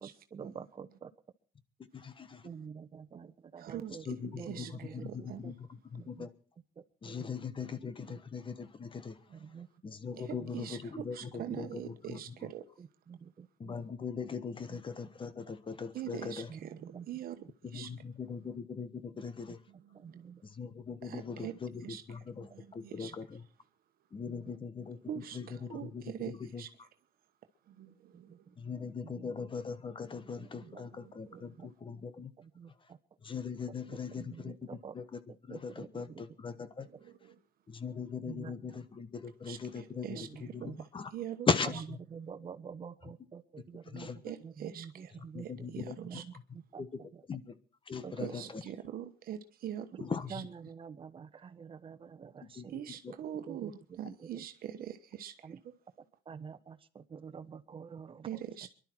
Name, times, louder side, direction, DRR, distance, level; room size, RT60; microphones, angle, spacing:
voice 1, 0.3-1.1 2.4-5.1 5.4-5.5 5.9-6.3 6.8-7.2 8.1-8.2 9.3-9.7 10.4-10.5 11.5-11.6 12.8-13.8 14.7-14.8 15.4-15.5 16.5-17.1 19.5-19.6 19.9-20.4 24.3-24.4 28.1-28.5 29.0-29.5 30.1-30.8 31.3-31.7 31.9-32.0 32.4-33.0 33.9-34.9 35.5-36.2 38.3-38.8 40.1-40.9 41.7-41.8 42.1-46.2 46.5-47.2 48.0-48.3 50.3-52.7 53.5-53.7 54.0-54.4 55.4-55.6 56.3-58.3, right 6 dB, 30° right, 1.2 m, -48 dB
voice 2, 1.9-2.4 4.1-4.7 5.0-5.5 5.9-6.3 7.0-9.2 9.8-11.2 11.6-11.7 12.1-12.2 13.6-16.5 17.7-19.6 20.4-23.3 24.1-25.0 25.3-25.4 25.7-26.6 28.6-32.3 33.2-34.5 34.9-35.2 35.5-36.9 37.7-40.0 40.5-41.1 41.5-42.0 43.9-44.2 45.3-46.0 46.8-46.9 47.3-47.5 47.9-48.3 50.0-50.5 52.6-52.7, left 5 dB, 30° left, 1.3 m, -39 dB
voice 3, 3.6-5.4 9.3-9.5 10.1-12.7 15.9-17.9 19.7-20.2 21.0-21.6 21.8-23.4 25.0-26.7 27.7-28.5 30.6-31.4 36.8-37.4 39.4-41.8 44.2-46.2 48.2-50.4 52.7-55.7 58.2-58.7, right 10 dB, 60° right, 1.3 m, -44 dB
23.5 x 11.5 x 4.6 m
cardioid pair, 110°, 17 cm